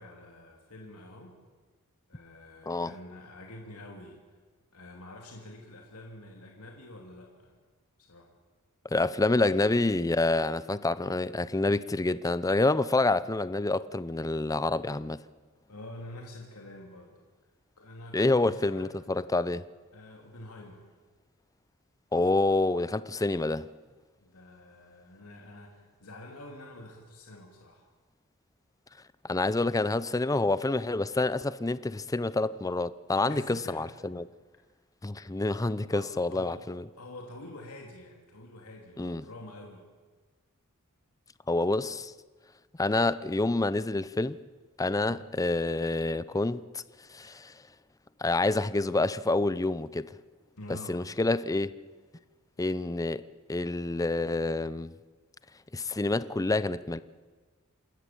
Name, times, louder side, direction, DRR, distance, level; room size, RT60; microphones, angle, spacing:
voice 1, 0.0-1.4 2.1-4.2 4.7-7.6 8.0-8.3 15.7-17.1 17.8-18.9 19.9-20.9 24.2-27.9 33.3-34.1 35.9-36.6 37.0-39.9 47.2-47.4 50.6-51.1 52.6-52.9, left 1 dB, 90° left, 2.8 m, -47 dB
voice 2, 8.9-15.2 18.1-19.6 22.1-23.7 29.2-34.3 35.0-36.8 39.0-39.2 41.5-42.1 42.8-44.4 44.8-46.8 47.1-47.5 48.2-50.2 50.7-51.7 52.6-53.2 53.5-54.9 55.7-57.0, left 2 dB, 15° left, 0.6 m, -27 dB
27.5 x 13.5 x 8.4 m
head